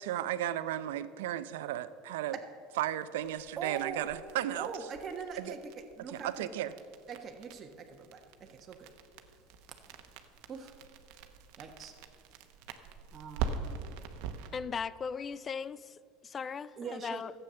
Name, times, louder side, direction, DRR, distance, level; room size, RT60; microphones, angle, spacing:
voice 1, 0.0-2.3 2.8-4.7 5.4-5.5 6.2-6.7, right 12 dB, 85° right, 14 dB, 0.5 m, -34 dB
sound 1, 3.2-14.6, right 6 dB, 65° right, 1.0 m, -43 dB
voice 2, 3.6-4.1 4.5-6.5 7.1-8.9 9.7-10.8 11.6-12.0 13.1-14.0 16.8-17.2, right 5 dB, 35° right, 3 dB, 1.3 m, -43 dB
voice 3, 14.5-17.3, left 6 dB, 30° left, 18 dB, 0.4 m, -38 dB
12.5 x 8.1 x 6.9 m, 2.3 s
supercardioid pair, 110°, 0 cm